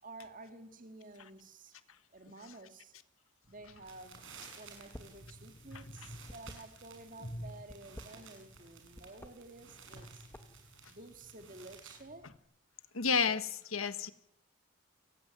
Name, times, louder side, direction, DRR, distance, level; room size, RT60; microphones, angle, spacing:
voice 1, 0.0-1.8 2.1-2.9 3.5-4.3 4.6-10.3 10.8-12.3, right 2 dB, 40° right, 2.0 m, -52 dB
sound 1, 3.4-12.4, equal, 40° left, 4.1 m, -53 dB
sound 2, 3.7-12.0, right 6 dB, 70° right, 6.9 m, -56 dB
sound 3, 4.9-5.2 5.5-7.1 7.6-8.7 8.9-9.3 9.8-10.7, equal, 10° left, 1.8 m, -51 dB
voice 2, 12.9-14.1, left 5 dB, 85° left, 1.6 m, -31 dB
29.5 x 16.0 x 9.6 m
head